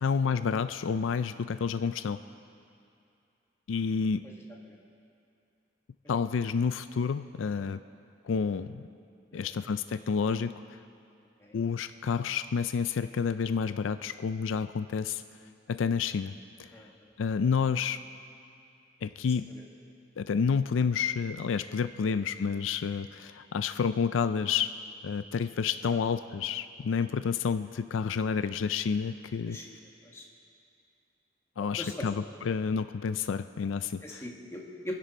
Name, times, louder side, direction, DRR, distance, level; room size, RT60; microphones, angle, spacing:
voice 1, 0.0-2.2 3.7-4.2 6.1-7.8 8.2-8.8 9.3-10.8 11.5-15.2 15.7-16.3 16.6-16.7 17.2-18.0 19.0-19.5 20.2-24.7 25.0-29.6 31.6-34.2, left 6 dB, 85° left, 12 dB, 0.4 m, -29 dB
voice 2, 16.7-17.1 19.5-19.6 22.0-22.2 25.9-26.0 29.5-29.8 30.0-30.3 31.6-32.1 34.0-34.9, left 1 dB, 15° left, -2 dB, 1.7 m, -42 dB
26.5 x 10.5 x 4.2 m, 2.5 s
head